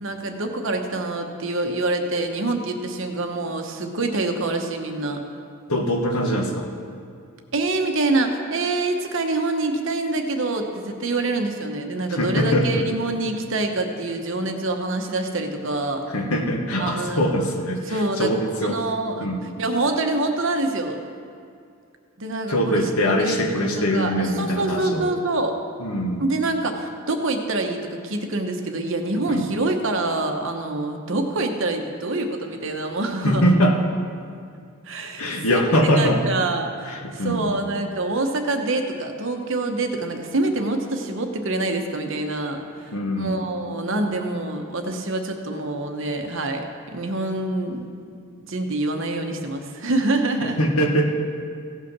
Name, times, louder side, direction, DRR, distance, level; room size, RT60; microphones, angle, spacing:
voice 1, 0.0-5.2 7.5-16.0 16.8-17.2 17.9-18.3 18.6-19.3 19.6-21.0 22.2-22.8 23.2-25.5 26.2-33.5 34.9-35.7 36.0-46.7 46.9-48.1 48.4-50.6, right 2 dB, 60° right, 4 dB, 1.0 m, -26 dB
voice 2, 5.7-6.7 12.1-12.8 16.1-18.8 19.2-19.4 22.5-25.1 25.8-26.3 29.3-29.5 33.2-33.9 35.2-36.2 36.9-37.5 42.9-43.4 50.4-51.1, equal, 75° left, 2 dB, 1.3 m, -22 dB
16.0 x 5.7 x 6.0 m, 2.3 s
head